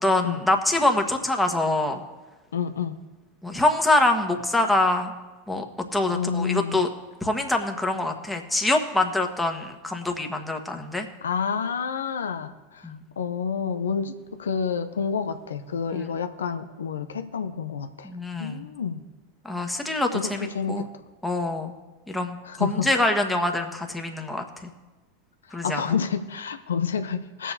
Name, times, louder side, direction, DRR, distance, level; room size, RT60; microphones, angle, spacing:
voice 1, 0.0-2.0 3.4-5.1 5.5-5.6 5.9-6.9 7.2-11.1 12.8-13.0 15.9-16.1 18.0-18.6 19.4-20.9 21.2-21.7 22.1-24.4 25.5-25.8, left 2 dB, 5° left, 3 dB, 1.4 m, -25 dB
voice 2, 2.5-3.0 6.1-6.8 11.2-14.1 14.4-18.1 18.4-19.0 20.1-20.9 22.4-22.9 25.5-27.5, left 6 dB, 80° left, 8 dB, 0.6 m, -29 dB
20.5 x 7.3 x 2.8 m, 1.2 s
hypercardioid pair, 90°, 0 cm